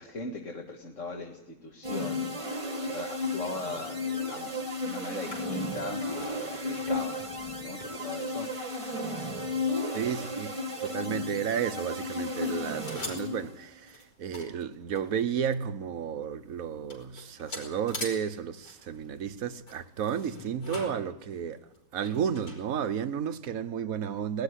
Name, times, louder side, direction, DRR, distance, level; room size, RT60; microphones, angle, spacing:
voice 1, 0.0-2.3 2.9-7.3 7.6-8.5, left 3 dB, 45° left, 2.1 m, -39 dB
sound 1, 1.8-13.6, left 2 dB, 20° right, 1.4 m, -34 dB
sound 2, 3.8-12.1 12.4-15.7 16.1-16.2 16.4-23.2, left 2 dB, 75° left, 5.8 m, -46 dB
voice 2, 9.9-10.5 10.8-21.6 21.9-24.4, right 8 dB, 60° right, 1.3 m, -32 dB
20.5 x 13.0 x 9.9 m
omnidirectional pair, 1.8 m